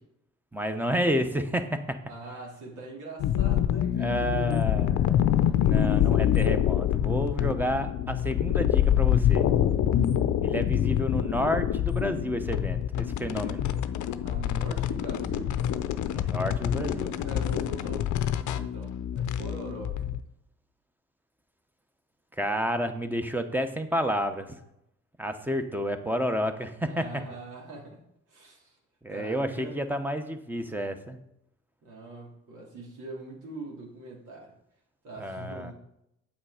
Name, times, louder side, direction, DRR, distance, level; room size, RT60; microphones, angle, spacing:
voice 1, 0.5-2.0 4.0-5.1 5.6-9.5 10.4-13.7 16.1-17.1 22.4-24.5 25.2-27.0 29.0-31.2 35.2-35.7, equal, 5° right, 7 dB, 1.0 m, -30 dB
voice 2, 2.0-4.2 5.4-6.4 14.2-15.6 17.2-20.0 26.8-28.8 29.1-29.8 31.8-34.5 35.0-35.7, right 2 dB, 80° right, -2 dB, 3.2 m, -43 dB
sound 1, 3.2-20.2, left 10 dB, 70° left, 0.6 m, -26 dB
8.8 x 7.0 x 5.0 m, 0.81 s
cardioid pair, 90°, 30 cm